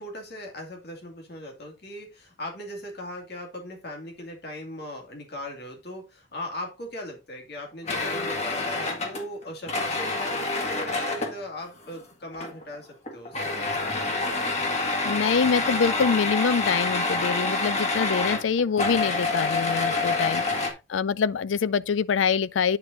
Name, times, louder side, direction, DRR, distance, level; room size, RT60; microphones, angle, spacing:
voice 1, 0.0-14.0 20.3-20.7, left 1 dB, 55° left, 2.4 m, -39 dB
sound 1, 7.9-11.4 12.3-12.8 13.1-20.7, left 3 dB, 35° left, 1.7 m, -27 dB
voice 2, 15.0-20.4 20.9-22.8, left 6 dB, 75° left, 0.4 m, -25 dB
9.6 x 4.3 x 4.0 m
head